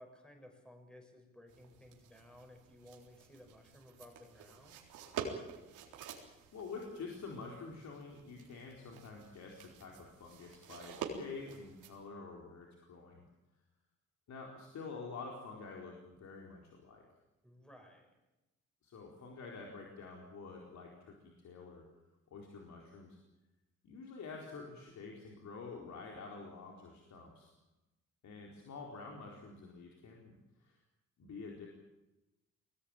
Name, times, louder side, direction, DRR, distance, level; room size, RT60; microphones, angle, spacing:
voice 1, 0.0-4.8 17.4-18.1, left 1 dB, 5° left, 4 dB, 6.4 m, -57 dB
sound 1, 1.5-12.0, right 6 dB, 90° right, 3.9 m, -48 dB
voice 2, 6.5-13.2 14.3-17.0 18.8-21.8 22.3-23.2 23.8-27.5 28.2-30.8 31.2-31.7, left 4 dB, 65° left, 0 dB, 4.5 m, -48 dB
21.5 x 19.0 x 9.0 m, 0.99 s
cardioid pair, 90°, 30 cm